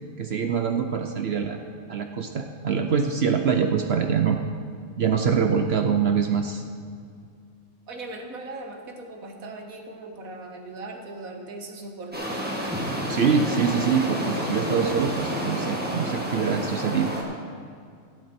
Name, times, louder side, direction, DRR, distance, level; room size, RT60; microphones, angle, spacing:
voice 1, 0.2-1.6 1.9-4.4 5.0-6.6 13.0-17.1, right 6 dB, 55° right, 5 dB, 0.8 m, -24 dB
voice 2, 7.9-12.4, right 2 dB, 80° right, 3 dB, 1.7 m, -39 dB
sound 1, 12.1-17.2, equal, 5° right, 1.7 m, -29 dB
13.5 x 11.5 x 4.4 m, 2.2 s
omnidirectional pair, 1.5 m